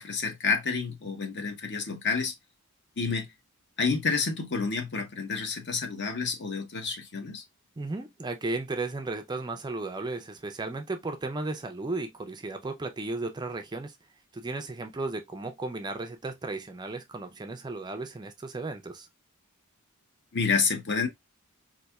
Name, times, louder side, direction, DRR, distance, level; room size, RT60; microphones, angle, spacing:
voice 1, 0.0-2.3 3.0-3.3 3.8-7.4 20.3-21.1, left 5 dB, 50° left, 0.8 m, -29 dB
voice 2, 7.8-14.0 14.3-19.1, right 3 dB, 20° right, 0.4 m, -35 dB
4.1 x 2.7 x 2.2 m
head